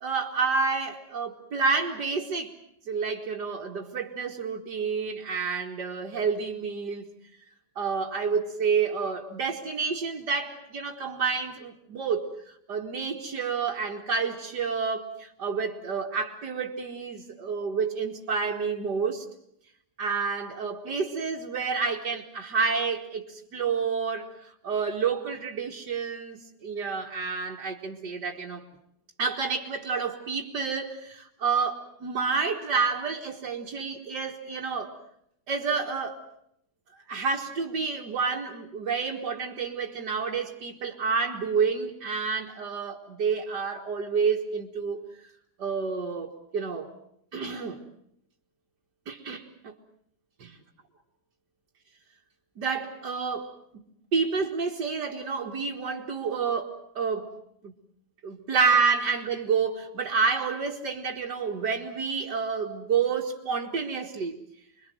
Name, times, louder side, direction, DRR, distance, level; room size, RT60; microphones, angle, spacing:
voice 1, 0.0-2.6 2.9-7.1 7.8-19.2 20.0-28.6 29.2-34.9 35.5-36.2 37.1-45.3 45.6-46.9 47.3-47.8 49.1-49.7 50.4-50.5 52.6-53.8 54.1-57.3 57.6-57.7 58.2-64.4, right 5 dB, 80° right, -2 dB, 2.4 m, -29 dB
26.5 x 23.0 x 7.8 m, 0.72 s
omnidirectional pair, 1.8 m